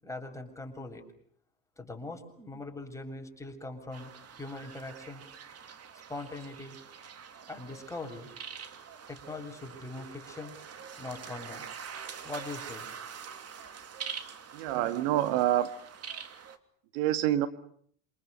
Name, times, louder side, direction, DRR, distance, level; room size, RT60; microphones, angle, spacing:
voice 1, 0.0-1.0 1.8-5.2 6.1-6.8 7.5-8.3 9.1-10.6 11.0-11.7 12.2-12.9, left 2 dB, 5° left, 2 dB, 7.3 m, -41 dB
sound 1, 3.9-16.6, right 7 dB, 35° right, 3.1 m, -45 dB
voice 2, 14.5-15.7 16.9-17.5, right 13 dB, 65° right, 10 dB, 1.9 m, -26 dB
27.5 x 27.5 x 6.8 m, 0.64 s
hypercardioid pair, 80°, 42 cm